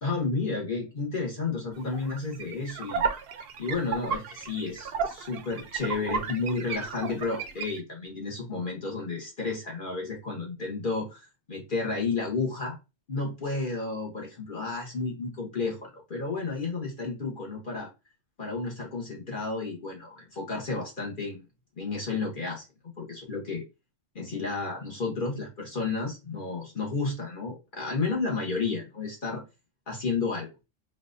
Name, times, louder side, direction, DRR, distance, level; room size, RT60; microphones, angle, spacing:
voice 1, 0.0-3.0 3.6-12.8 13.1-17.9 18.4-21.4 21.8-22.7 23.0-23.6 24.1-29.4 29.9-30.5, left 4 dB, 45° left, 1.2 m, -32 dB
sound 1, 1.8-7.8, right 6 dB, 65° right, 0.7 m, -33 dB
4.0 x 2.4 x 2.6 m
omnidirectional pair, 1.2 m